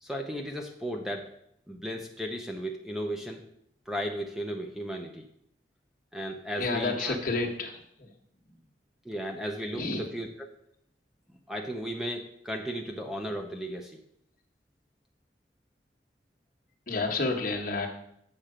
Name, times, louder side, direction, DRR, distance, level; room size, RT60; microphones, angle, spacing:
voice 1, 0.0-1.3 1.7-3.4 3.9-5.3 6.1-7.2 9.0-10.5 11.5-14.0, equal, ahead, 3 dB, 0.6 m, -35 dB
voice 2, 6.6-8.1 9.7-10.0 16.9-17.9, left 3 dB, 50° left, 2 dB, 1.3 m, -30 dB
7.7 x 5.9 x 5.0 m, 0.73 s
head